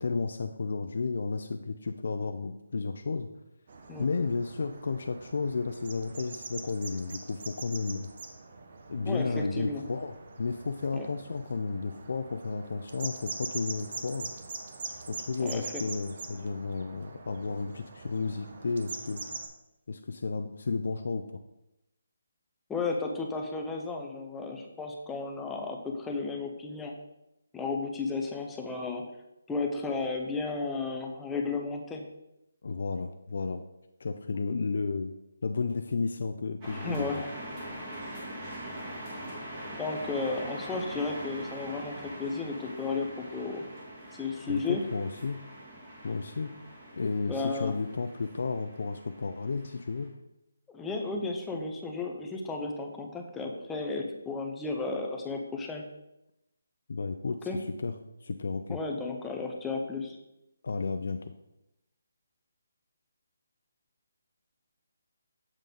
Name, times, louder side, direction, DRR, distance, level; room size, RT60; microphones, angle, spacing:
voice 1, 0.0-3.3 4.0-8.1 8.9-14.3 15.1-19.2 19.9-21.2 32.6-33.6 34.0-35.1 35.4-37.2 44.5-45.4 46.0-46.5 46.9-50.1 56.9-57.5 57.8-57.9 58.2-58.8 60.6-61.2, left 4 dB, 55° left, 7 dB, 0.4 m, -32 dB
sound 1, 3.7-19.5, right 4 dB, 40° right, 0.8 m, -43 dB
voice 2, 9.0-9.8 10.9-11.1 15.4-15.8 22.7-26.9 27.5-29.1 29.5-32.1 36.7-37.3 39.8-43.7 44.1-44.8 47.3-47.7 50.7-55.8 57.5-57.6 58.7-60.2, left 3 dB, 5° left, 1 dB, 0.5 m, -33 dB
sound 2, 36.6-50.1, right 1 dB, 20° right, 1.7 m, -43 dB
7.4 x 3.8 x 5.2 m, 0.89 s
hypercardioid pair, 170°, 0 cm